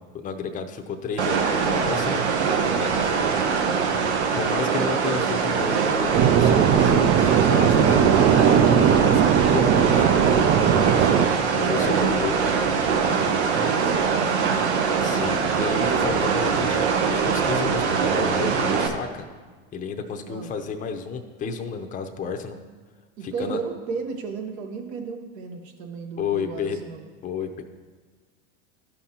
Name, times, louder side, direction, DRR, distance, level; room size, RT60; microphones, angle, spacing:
voice 1, 0.1-2.2 2.8-2.9 4.3-7.8 8.3-11.3 11.6-12.4 13.0-13.2 15.0-19.3 19.7-22.6 23.2-23.6 26.2-26.8 27.2-27.6, left 6 dB, 25° left, 5 dB, 0.6 m, -31 dB
sound 1, 1.2-18.9, right 5 dB, 90° right, 0.8 m, -23 dB
voice 2, 3.0-3.4 13.2-14.6 20.3-20.5 23.2-27.0, right 5 dB, 75° right, 4 dB, 1.2 m, -35 dB
sound 2, 6.1-11.3, right 9 dB, 40° right, 0.4 m, -19 dB
12.5 x 5.5 x 2.9 m, 1.4 s
hypercardioid pair, 100°, 33 cm